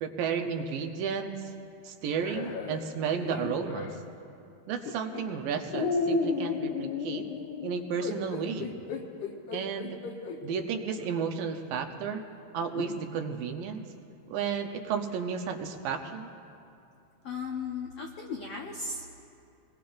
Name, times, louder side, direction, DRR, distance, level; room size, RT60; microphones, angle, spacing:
voice 1, 0.0-1.5 1.8-3.9 4.7-7.3 7.6-8.7 9.5-10.0 10.4-12.2 12.5-13.9 14.3-16.3, right 6 dB, 75° right, 5 dB, 2.5 m, -32 dB
sound 1, 2.1-4.0 4.8-5.2 5.7-10.4 11.0-11.1 12.7-13.0, left 4 dB, 70° left, 2.2 m, -33 dB
voice 2, 17.2-19.2, left 4 dB, 85° left, 0 dB, 1.3 m, -36 dB
26.5 x 20.5 x 2.5 m, 2.6 s
omnidirectional pair, 4.1 m